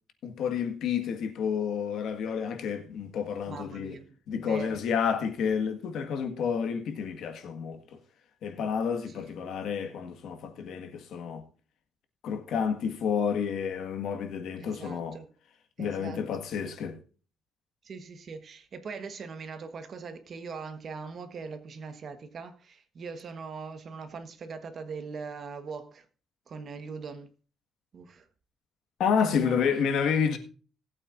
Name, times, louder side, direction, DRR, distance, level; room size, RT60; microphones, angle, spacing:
voice 1, 0.2-4.0 4.3-8.0 8.4-11.4 12.2-15.2 15.8-17.0 29.0-30.4, left 7 dB, 75° left, 1.7 m, -30 dB
voice 2, 3.5-4.8 9.1-9.4 14.6-15.3 15.8-16.2 17.8-26.0 26.5-27.3 27.9-28.3 29.2-29.6, right 5 dB, 45° right, 1.3 m, -41 dB
19.0 x 8.6 x 2.6 m
cardioid pair, 160°, 0 cm